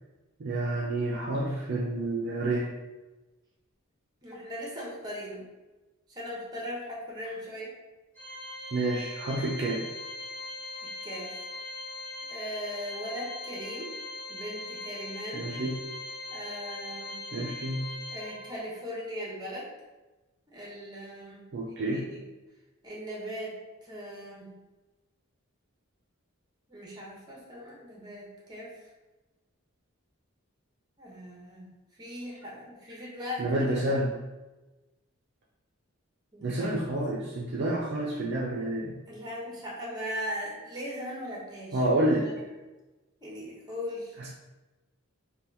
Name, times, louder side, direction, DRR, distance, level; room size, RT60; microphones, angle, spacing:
voice 1, 0.4-2.7 8.7-9.9 15.3-15.8 17.3-17.9 21.5-22.0 33.4-34.1 36.4-39.0 41.7-42.3 44.2-44.3, right 1 dB, 50° right, -3 dB, 0.4 m, -29 dB
voice 2, 4.2-5.4 6.1-7.7 10.8-11.4 12.3-13.9 14.3-15.5 16.3-17.2 18.1-19.7 20.5-22.2 22.8-24.5 26.7-28.7 31.0-33.8 36.3-36.7 39.1-41.8 42.1-42.4 43.2-44.1, equal, 20° right, -4 dB, 0.8 m, -39 dB
Organ, 8.2-18.8, left 2 dB, 10° left, 1.3 m, -40 dB
2.8 x 2.2 x 3.4 m, 1.1 s
head